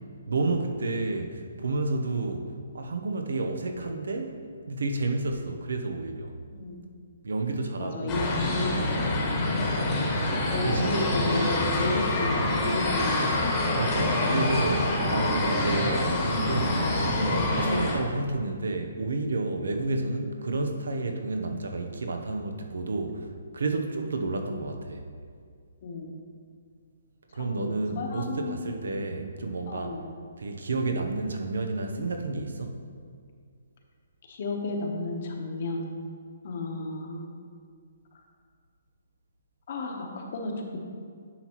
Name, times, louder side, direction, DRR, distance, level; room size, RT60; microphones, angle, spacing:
voice 1, 0.3-4.4 4.7-6.4 7.2-8.4 9.1-9.4 10.6-11.7 13.7-25.0 27.3-30.0 30.4-32.8, right 3 dB, 85° right, 5 dB, 0.8 m, -30 dB
voice 2, 6.5-6.8 7.8-8.9 9.7-9.8 10.5-13.5 25.8-26.1 27.4-28.6 28.9-29.1 29.7-30.0 34.3-35.9 36.4-37.3 39.7-40.8, left 2 dB, 45° left, 2 dB, 1.0 m, -33 dB
sound 1, 8.1-17.9, left 2 dB, 20° left, 1.2 m, -26 dB
9.6 x 5.9 x 3.0 m, 2.1 s
hypercardioid pair, 165°, 0 cm